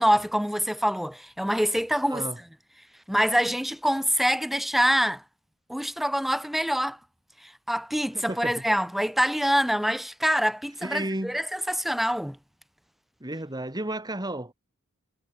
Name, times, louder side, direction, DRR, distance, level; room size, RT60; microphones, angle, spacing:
voice 1, 0.0-2.3 3.1-5.2 5.7-7.0 7.4-12.4, equal, ahead, 1.5 m, -25 dB
voice 2, 8.1-8.6 10.8-11.4 13.2-14.5, right 1 dB, 20° right, 3.1 m, -32 dB
head